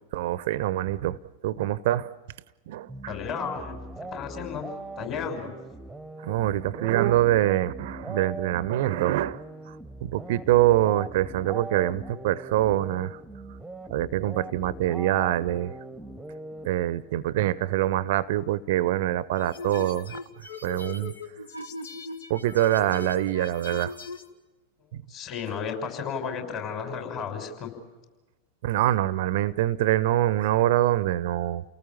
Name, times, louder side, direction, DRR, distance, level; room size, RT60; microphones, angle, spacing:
voice 1, 0.1-1.2 1.4-2.1 2.7-2.9 6.2-9.4 10.0-13.2 13.9-15.8 16.6-20.2 20.6-21.1 22.3-23.9 28.6-31.6, right 14 dB, 50° right, 19 dB, 0.7 m, -24 dB
sound 1, 2.9-17.2, right 2 dB, 5° right, 1.0 m, -41 dB
voice 2, 3.1-3.8 4.1-4.7 5.0-5.5 25.1-27.7, left 6 dB, 40° left, 3 dB, 6.0 m, -33 dB
sound 2, 19.4-24.3, left 4 dB, 70° left, 1.7 m, -39 dB
30.0 x 19.0 x 7.3 m, 1.2 s
figure-of-eight pair, 90°, 0 cm